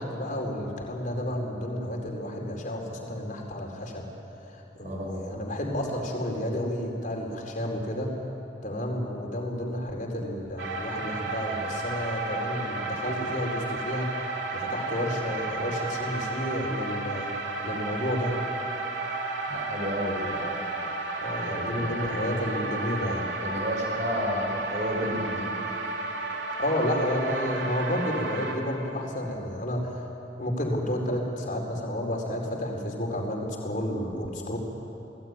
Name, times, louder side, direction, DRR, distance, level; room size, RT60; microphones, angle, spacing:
voice 1, 0.0-4.0 4.5-8.2 8.6-14.2 14.5-17.3 17.6-18.4 21.2-23.3 26.6-30.1 30.4-34.6, left 1 dB, 45° left, 1 dB, 4.5 m, -31 dB
voice 2, 4.8-5.2 19.5-20.4 21.5-22.0 23.4-25.5, equal, 45° right, -1 dB, 5.1 m, -31 dB
sound 1, 10.6-28.5, right 3 dB, 75° right, 3.4 m, -32 dB
29.5 x 19.5 x 9.7 m, 2.9 s
head